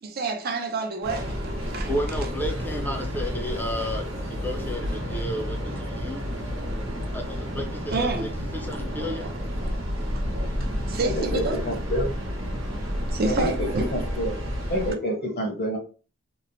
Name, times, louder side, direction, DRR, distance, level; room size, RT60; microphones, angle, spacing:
voice 1, 0.0-1.9 7.9-8.3 8.9-9.0 9.6-9.7 10.9-11.6 12.8-14.0, right 3 dB, 50° right, 0.5 m, -29 dB
Train, 1.0-14.9, equal, 75° right, 0.9 m, -30 dB
voice 2, 1.9-6.3 7.1-9.3, equal, 10° left, 0.5 m, -32 dB
voice 3, 11.0-12.1 13.2-14.4 14.7-15.8, equal, 55° left, 0.9 m, -28 dB
3.0 x 2.1 x 2.6 m
head